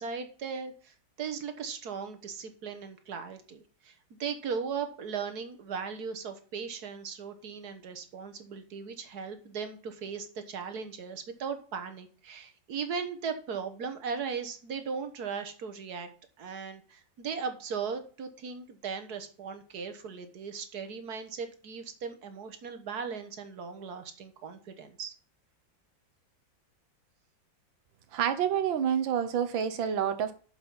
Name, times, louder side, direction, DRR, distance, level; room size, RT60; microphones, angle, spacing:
voice 1, 0.0-16.1 16.4-25.1, right 6 dB, 55° right, 8 dB, 1.7 m, -38 dB
voice 2, 28.1-30.3, right 8 dB, 90° right, 10 dB, 1.8 m, -28 dB
8.6 x 7.0 x 5.6 m, 0.41 s
omnidirectional pair, 2.0 m